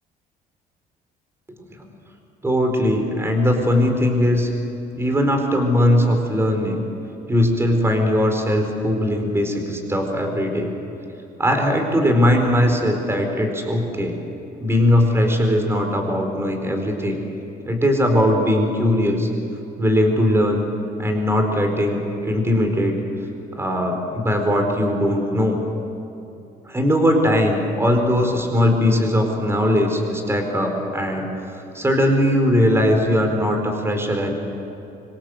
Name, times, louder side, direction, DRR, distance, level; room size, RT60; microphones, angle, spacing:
voice 1, 2.4-4.5 4.9-6.8 7.3-10.7 11.4-14.2 14.6-17.2 17.7-19.3 19.8-20.6 21.0-23.0 23.6-25.6 26.7-31.3 31.7-34.3, left 1 dB, 15° right, 4 dB, 4.6 m, -19 dB
25.5 x 25.5 x 7.9 m, 2.9 s
cardioid pair, 110°, 17 cm